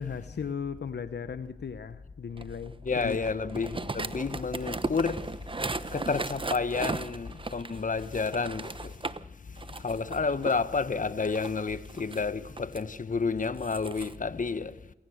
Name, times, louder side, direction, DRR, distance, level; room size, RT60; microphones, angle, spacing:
voice 1, 0.0-3.2, left 6 dB, 65° left, 1.1 m, -36 dB
sound 1, 2.4-9.2 9.6-10.6 11.2-12.8 13.4-14.1, right 3 dB, 25° right, 1.1 m, -36 dB
voice 2, 2.8-5.3 5.9-8.9 9.8-14.8, left 4 dB, 45° left, 1.3 m, -30 dB
28.5 x 17.0 x 6.5 m
supercardioid pair, 40°, 19 cm